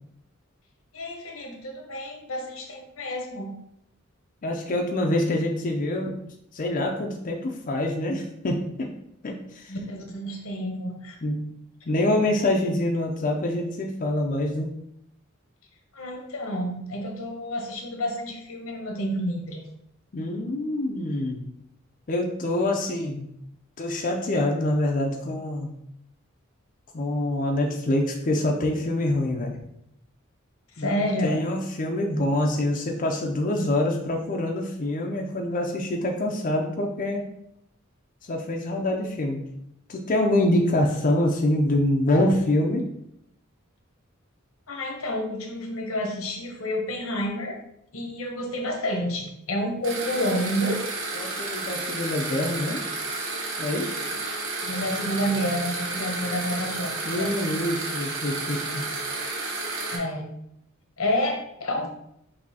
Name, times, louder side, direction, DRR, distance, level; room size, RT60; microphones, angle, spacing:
voice 1, 0.9-3.6 9.7-11.2 15.9-19.7 30.8-31.4 44.7-47.6 47.9-50.9 54.6-57.3 59.9-60.3 61.0-61.9, equal, 85° left, 2 dB, 0.9 m, -29 dB
voice 2, 4.4-6.2 6.5-8.9 9.2-9.7 11.2-11.5 11.9-14.7 20.1-21.4 22.1-23.3 23.8-25.7 26.9-29.5 30.8-37.3 38.2-39.4 39.9-42.8 51.1-52.8 53.6-54.0 57.0-58.9, left 1 dB, 40° left, 1 dB, 0.4 m, -25 dB
sound 1, 49.8-60.0, right 3 dB, 70° right, 1.0 m, -31 dB
6.0 x 2.7 x 2.8 m, 0.76 s
head